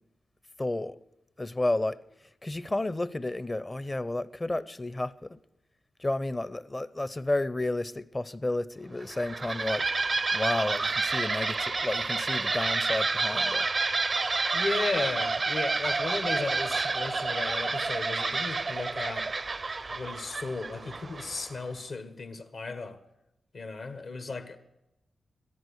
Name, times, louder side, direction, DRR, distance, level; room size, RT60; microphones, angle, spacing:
voice 1, 0.6-1.0 1.4-2.0 2.4-5.4 6.0-9.8 10.3-13.7, left 2 dB, 25° left, 0.6 m, -31 dB
sound 1, 9.0-21.6, right 3 dB, 45° right, 0.4 m, -29 dB
voice 2, 14.2-19.3 19.9-23.0 23.5-24.6, left 3 dB, 70° left, 1.4 m, -35 dB
14.0 x 11.0 x 6.5 m
cardioid pair, 55°, 0 cm